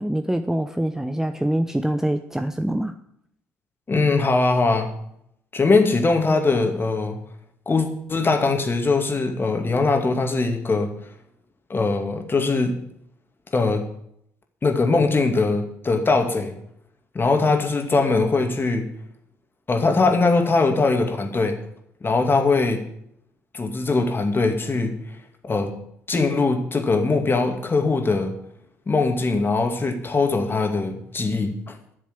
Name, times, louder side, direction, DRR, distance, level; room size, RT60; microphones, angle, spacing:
voice 1, 0.0-2.9, right 1 dB, 5° right, 9 dB, 0.8 m, -24 dB
voice 2, 3.9-4.9 5.5-7.2 7.7-10.9 11.7-12.7 13.5-13.8 14.6-16.6 17.1-18.9 19.7-21.6 22.0-22.8 23.5-25.0 25.4-25.7 26.1-28.3 28.9-31.7, left 3 dB, 30° left, 4 dB, 2.4 m, -21 dB
11.0 x 7.4 x 8.5 m, 0.72 s
figure-of-eight pair, 50°, 8 cm